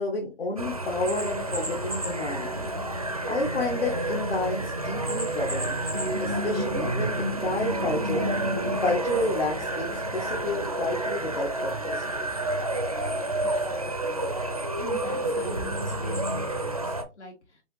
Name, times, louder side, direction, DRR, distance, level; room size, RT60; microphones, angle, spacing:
voice 1, 0.0-2.7 3.3-5.8 6.2-8.3 8.8-12.0, left 2 dB, 55° left, -2 dB, 1.3 m, -30 dB
sound 1, 0.6-17.0, right 1 dB, 35° right, 0.5 m, -29 dB
voice 2, 13.4-14.2 14.8-17.6, left 2 dB, 75° left, -1 dB, 2.6 m, -44 dB
6.1 x 2.7 x 3.2 m, 0.28 s
hypercardioid pair, 180°, 35 cm